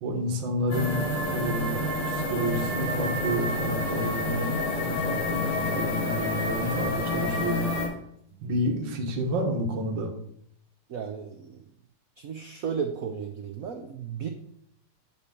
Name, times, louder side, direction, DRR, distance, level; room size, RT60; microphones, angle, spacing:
voice 1, 0.0-1.8 2.1-7.6 8.4-10.1, equal, 60° right, 1 dB, 1.8 m, -30 dB
sound 1, 0.7-7.9, left 1 dB, 70° left, 3.7 m, -28 dB
voice 2, 10.9-11.6 12.2-14.3, right 7 dB, 85° right, 5 dB, 0.7 m, -34 dB
9.3 x 3.4 x 6.7 m, 0.70 s
omnidirectional pair, 2.4 m